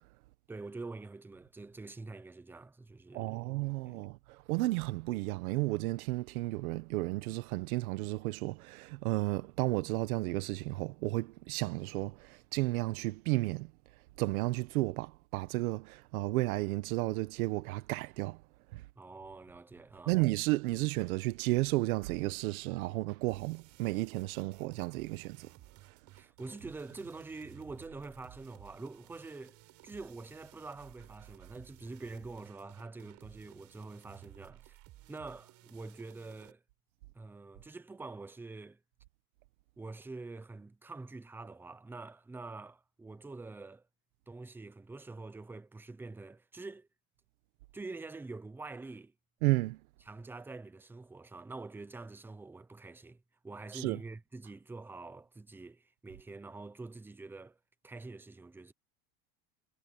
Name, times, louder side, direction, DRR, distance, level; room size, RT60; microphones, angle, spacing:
voice 1, 0.5-3.5 3.9-4.0 19.0-20.2 26.1-29.6 29.8-34.8 35.1-36.6 37.1-38.8 39.8-43.8 44.3-46.9 47.7-49.1 50.1-57.6 57.8-58.7, right 3 dB, 5° right, 0.8 m, -46 dB
voice 2, 3.1-13.7 14.2-18.4 18.7-18.8 20.1-25.5 49.4-49.8 53.7-54.0, right 20 dB, 70° right, 1.3 m, -33 dB
sound 1, 23.3-36.5, right 16 dB, 40° right, 4.2 m, -57 dB
supercardioid pair, 155°, 45 cm